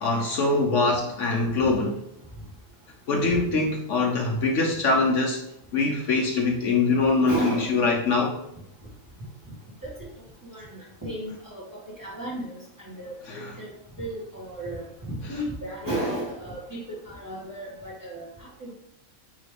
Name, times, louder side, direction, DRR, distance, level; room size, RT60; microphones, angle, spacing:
voice 1, 0.0-1.9 3.1-5.4 5.7-8.4 13.3-13.5, left 3 dB, 65° left, 2 dB, 1.1 m, -23 dB
voice 2, 7.2-7.7 9.8-10.1 10.4-13.7 14.0-14.9 15.2-18.3 18.6-18.7, right 1 dB, 15° right, -7 dB, 2.1 m, -34 dB
9.1 x 3.4 x 3.3 m, 0.83 s
omnidirectional pair, 1.4 m